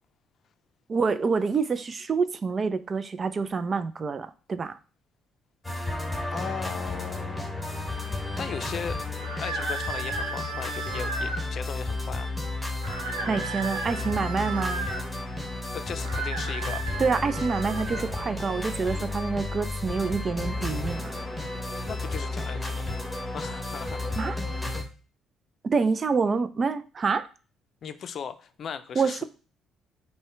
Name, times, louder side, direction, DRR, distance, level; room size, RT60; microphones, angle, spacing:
voice 1, 0.9-4.8 13.3-14.9 17.0-21.1 24.2-24.4 25.6-27.3 29.0-29.2, right 5 dB, 40° right, 0.4 m, -27 dB
sound 1, 5.6-24.8, left 2 dB, 5° left, 1.4 m, -32 dB
voice 2, 6.3-7.4 8.4-9.0 9.4-12.3 15.7-16.9 21.8-23.0 23.3-24.0 27.8-29.2, left 7 dB, 55° left, 0.5 m, -37 dB
sound 2, 9.2-11.4 12.8-15.0 16.0-18.0, right 4 dB, 90° right, 0.8 m, -35 dB
5.4 x 2.2 x 4.3 m
hypercardioid pair, 55°, 0 cm